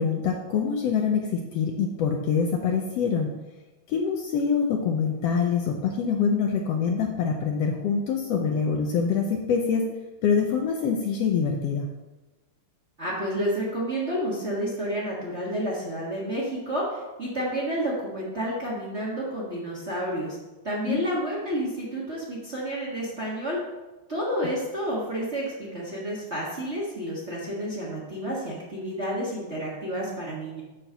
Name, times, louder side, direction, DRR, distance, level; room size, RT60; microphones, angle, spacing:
voice 1, 0.0-3.3 3.9-9.9 10.2-11.8 20.9-21.0, left 6 dB, 70° left, 3 dB, 1.6 m, -25 dB
voice 2, 13.0-20.4 20.6-23.6 24.1-30.6, equal, 30° right, -4 dB, 1.3 m, -30 dB
8.8 x 4.4 x 6.7 m, 1.1 s
omnidirectional pair, 3.3 m